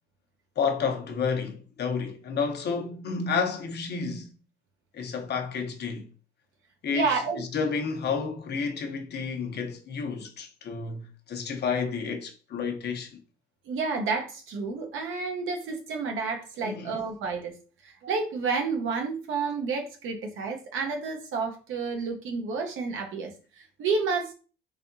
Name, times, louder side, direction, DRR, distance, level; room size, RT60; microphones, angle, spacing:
voice 1, 0.6-4.3 4.9-6.1 6.8-7.1 7.4-13.2 16.6-17.0, left 5 dB, 55° left, 0.7 m, -30 dB
voice 2, 6.9-7.4 13.7-17.6 17.8-24.3, right 4 dB, 85° right, 0.8 m, -30 dB
3.4 x 3.3 x 2.6 m
cardioid pair, 90°, 20 cm